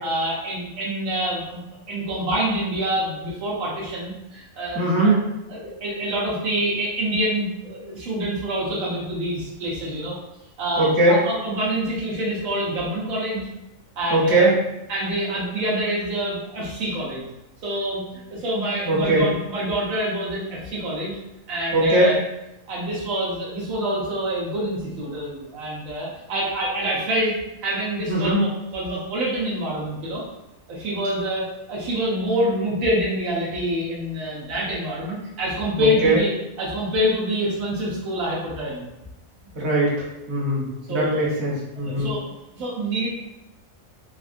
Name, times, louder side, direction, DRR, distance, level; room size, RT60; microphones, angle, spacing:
voice 1, 0.0-1.6 1.9-10.2 10.6-13.5 14.0-14.5 14.9-17.2 17.6-21.2 21.5-22.2 22.7-30.2 30.7-38.9 40.9-41.3 41.7-42.2 42.6-43.1, equal, 80° right, -5 dB, 1.1 m, -26 dB
voice 2, 4.7-5.2 10.8-11.2 14.1-14.5 18.8-19.3 21.7-22.1 28.1-28.4 35.8-36.2 39.5-39.9 40.3-42.1, right 2 dB, 55° right, -5 dB, 1.1 m, -20 dB
3.4 x 2.3 x 2.5 m, 0.92 s
omnidirectional pair, 1.4 m